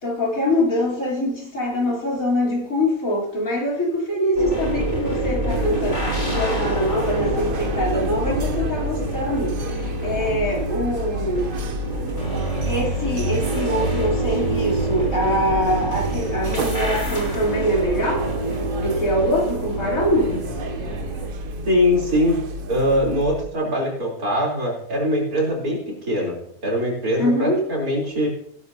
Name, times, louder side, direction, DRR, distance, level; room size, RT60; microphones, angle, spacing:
voice 1, 0.0-11.5 12.7-18.3 18.8-20.4 27.2-27.6, equal, 65° left, 3.9 m, -24 dB
sound 1, 4.3-21.3, right 1 dB, 30° left, 5.2 m, -27 dB
sound 2, 5.5-23.5, equal, 45° right, 0.8 m, -30 dB
voice 2, 21.6-22.4 22.7-25.8 26.1-26.4 26.6-28.3, equal, 80° right, 4.1 m, -22 dB
16.5 x 12.0 x 2.7 m
omnidirectional pair, 1.5 m